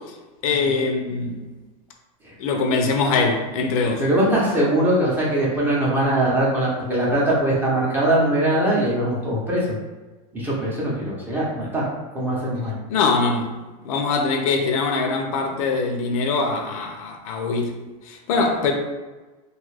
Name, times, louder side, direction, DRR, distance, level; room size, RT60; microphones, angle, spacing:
voice 1, 0.4-1.4 2.4-4.0 12.9-13.6 13.8-17.7 18.1-18.7, left 4 dB, 70° left, 4 dB, 0.5 m, -22 dB
voice 2, 4.0-9.6 10.3-11.8 12.1-12.7, right 1 dB, 10° right, -5 dB, 0.7 m, -21 dB
2.7 x 2.4 x 3.2 m, 1.2 s
supercardioid pair, 155°, 19 cm